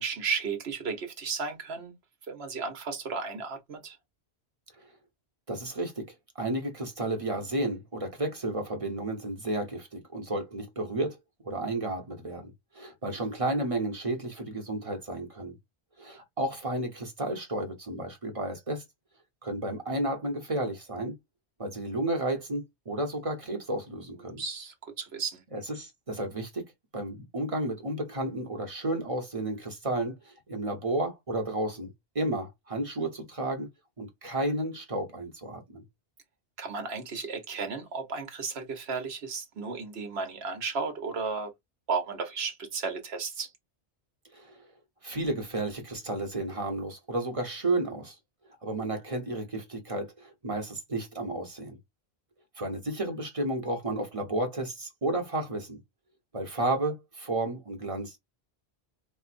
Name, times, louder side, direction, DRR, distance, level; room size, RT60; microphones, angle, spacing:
voice 1, 0.0-1.9 2.3-4.0 24.4-25.4 36.6-41.5 41.9-43.5, right 5 dB, 70° right, 1.3 m, -34 dB
voice 2, 5.5-11.2 11.4-15.6 16.0-18.8 19.4-21.2 21.6-24.4 25.5-26.7 26.9-33.7 34.0-35.8 44.3-44.6 45.0-48.2 48.6-51.8 52.6-55.8 56.3-58.2, right 2 dB, 30° right, 1.1 m, -32 dB
4.5 x 2.4 x 2.5 m
omnidirectional pair, 1.1 m